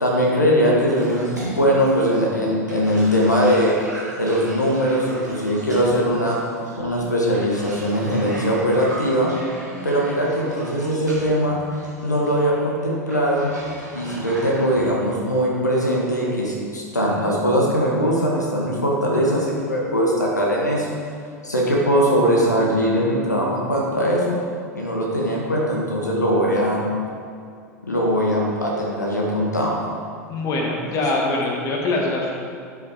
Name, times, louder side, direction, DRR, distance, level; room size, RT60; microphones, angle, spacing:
voice 1, 0.0-3.8 4.2-6.4 6.8-9.3 9.8-11.6 12.0-13.5 13.9-21.0 21.4-24.4 24.7-26.8 27.8-29.8, equal, 85° left, -3 dB, 1.4 m, -21 dB
Cough, 0.9-14.8, right 1 dB, 90° right, 2.3 m, -38 dB
voice 2, 30.3-32.3, left 2 dB, 40° left, -1 dB, 1.9 m, -23 dB
10.5 x 7.4 x 3.6 m, 2.3 s
figure-of-eight pair, 85°, 9 cm